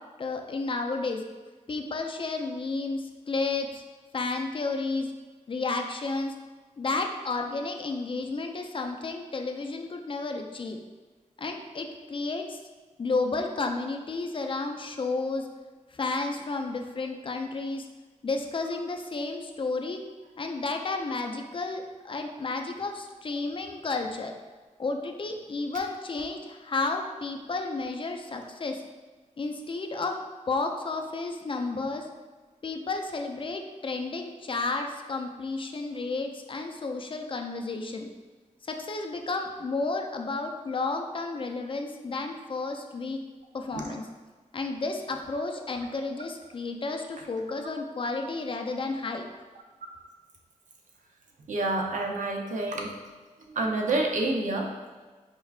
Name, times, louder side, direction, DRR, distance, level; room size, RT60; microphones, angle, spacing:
voice 1, 0.2-1.2 1.7-3.8 4.1-5.1 5.5-6.4 6.8-10.8 11.4-12.6 13.0-15.5 15.9-17.9 18.2-20.0 20.4-24.3 24.8-28.8 29.4-30.2 30.5-32.1 32.6-38.1 38.7-43.2 43.5-44.1 44.5-49.3, left 3 dB, 45° left, 4 dB, 0.4 m, -32 dB
voice 2, 51.5-52.9 53.5-54.7, right 2 dB, 85° right, 1 dB, 0.6 m, -28 dB
4.4 x 3.3 x 2.4 m, 1.3 s
wide cardioid pair, 95°, 13 cm